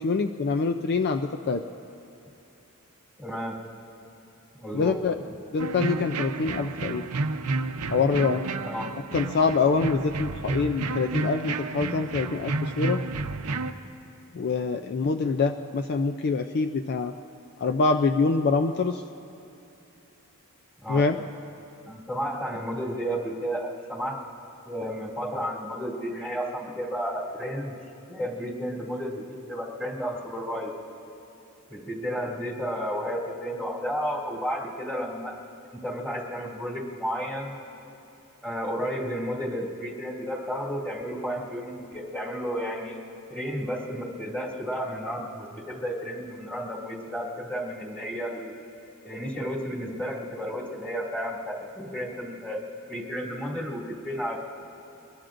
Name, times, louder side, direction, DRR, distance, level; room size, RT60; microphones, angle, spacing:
voice 1, 0.0-1.6 4.7-5.2 5.5-7.1 7.9-8.4 9.1-13.0 14.3-17.1 17.6-19.0 20.9-21.2, left 4 dB, 50° left, 7 dB, 0.4 m, -25 dB
voice 2, 3.2-3.6 4.6-5.0 8.6-8.9 20.8-21.0 21.8-24.2 24.6-27.8 28.1-30.7 31.7-35.4 35.8-37.6 38.4-43.0 43.3-48.5 49.0-54.4, equal, 5° left, -4 dB, 2.4 m, -32 dB
sound 1, 5.6-13.7, right 3 dB, 80° right, 0.7 m, -31 dB
25.0 x 21.0 x 2.6 m, 2.9 s
head